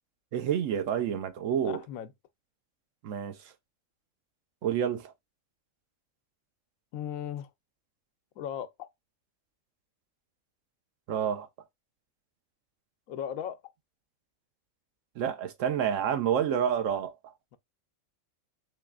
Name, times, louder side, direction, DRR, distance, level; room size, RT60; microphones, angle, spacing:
voice 1, 0.3-1.8 3.0-3.4 4.6-5.1 11.1-11.5 15.2-17.3, right 8 dB, 75° right, 1.0 m, -29 dB
voice 2, 1.6-2.1 6.9-7.5 8.4-8.9 13.1-13.7, left 9 dB, 85° left, 1.1 m, -37 dB
4.0 x 3.2 x 2.3 m
omnidirectional pair, 1.4 m